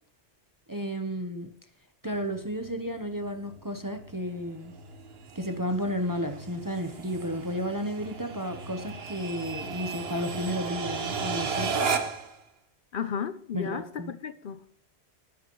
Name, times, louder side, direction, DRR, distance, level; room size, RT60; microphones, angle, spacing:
voice 1, 0.7-1.5 2.0-4.7 5.3-11.7 13.5-14.1, equal, 20° right, 0.7 m, -32 dB
sound 1, 2.1-12.4, right 5 dB, 65° right, 1.3 m, -35 dB
voice 2, 12.9-14.8, left 7 dB, 60° left, 0.7 m, -34 dB
20.0 x 8.4 x 3.0 m
omnidirectional pair, 1.1 m